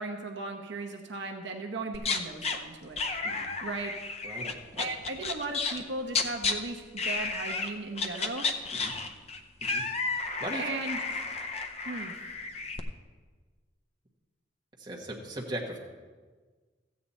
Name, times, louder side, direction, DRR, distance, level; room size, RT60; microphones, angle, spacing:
voice 1, 0.0-3.0 3.6-3.9 4.8-8.5 10.6-11.0 11.8-12.1, right 3 dB, 70° right, 3 dB, 0.9 m, -36 dB
sound 1, 1.9-2.6 3.0-5.8 6.1-6.5 7.0-7.7 8.0-12.8, left 4 dB, 35° left, 0.6 m, -32 dB
voice 2, 4.2-4.9 8.7-9.0 9.6-9.8 10.2-10.6 14.8-15.8, right 1 dB, 25° right, -2 dB, 1.5 m, -39 dB
14.0 x 8.5 x 4.3 m, 1.4 s
head